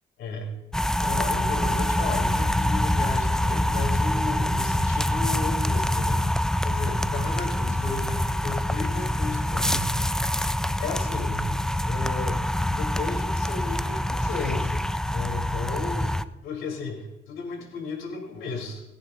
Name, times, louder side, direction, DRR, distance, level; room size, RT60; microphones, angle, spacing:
voice 1, 0.2-0.6 1.0-6.2 6.6-9.9 10.8-11.5 11.8-16.1 16.4-18.8, left 4 dB, 85° left, 0 dB, 4.3 m, -34 dB
sound 1, 0.7-16.2, left 1 dB, 5° left, 0.5 m, -25 dB
29.0 x 10.0 x 2.9 m, 0.93 s
cardioid pair, 90°, 20 cm